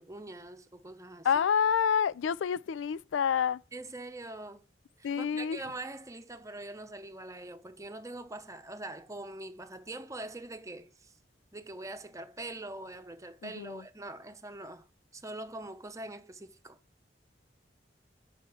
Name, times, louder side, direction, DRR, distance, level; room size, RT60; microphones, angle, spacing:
voice 1, 0.0-1.4 3.7-4.7 5.0-11.1 11.5-14.9 15.1-16.8, right 2 dB, 15° right, 0.9 m, -43 dB
voice 2, 1.2-3.6 5.0-5.6 13.4-13.8, left 7 dB, 85° left, 0.4 m, -28 dB
6.3 x 5.7 x 6.9 m
head